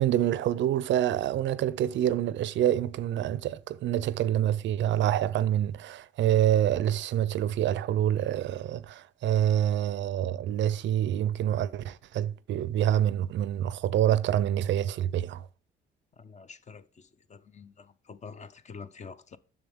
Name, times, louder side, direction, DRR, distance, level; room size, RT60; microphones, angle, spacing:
voice 1, 0.0-15.4, right 11 dB, 70° right, 0.4 m, -26 dB
voice 2, 16.2-19.4, left 5 dB, 35° left, 0.6 m, -47 dB
7.1 x 6.4 x 3.6 m
cardioid pair, 90°, 20 cm